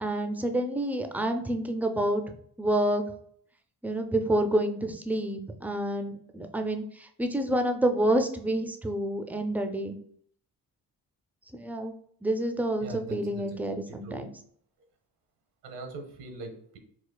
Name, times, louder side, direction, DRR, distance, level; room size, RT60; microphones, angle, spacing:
voice 1, 0.0-2.2 2.6-3.0 3.8-6.8 7.2-10.0 11.5-11.9 12.2-14.3, right 1 dB, 5° right, 6 dB, 0.3 m, -28 dB
voice 2, 12.8-14.3 15.6-16.8, right 3 dB, 85° right, 5 dB, 0.8 m, -42 dB
4.1 x 2.3 x 2.2 m, 0.62 s
supercardioid pair, 60°, 40 cm